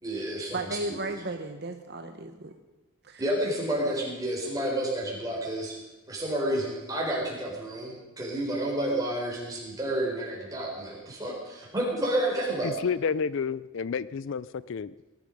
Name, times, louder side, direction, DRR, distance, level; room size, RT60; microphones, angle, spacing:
voice 1, 0.0-1.0 3.2-5.8 6.1-12.7, right 1 dB, 15° right, -3 dB, 4.2 m, -30 dB
voice 2, 0.5-2.5 3.0-3.2, right 2 dB, 50° right, 6 dB, 0.9 m, -35 dB
voice 3, 12.6-15.0, left 6 dB, 60° left, 18 dB, 0.4 m, -30 dB
19.5 x 12.0 x 5.3 m, 1.1 s
head